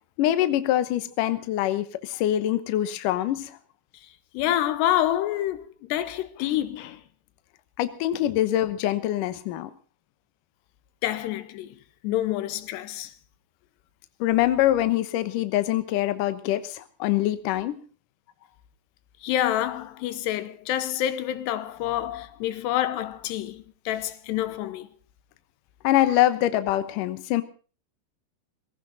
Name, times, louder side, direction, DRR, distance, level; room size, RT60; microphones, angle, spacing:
voice 1, 0.2-3.6 7.8-9.7 14.2-17.8 25.8-27.4, left 13 dB, 65° left, 2.3 m, -24 dB
voice 2, 4.3-7.0 11.0-11.8 12.0-13.1 19.2-24.9, left 12 dB, 90° left, 3.1 m, -27 dB
20.0 x 16.5 x 4.0 m
omnidirectional pair, 4.8 m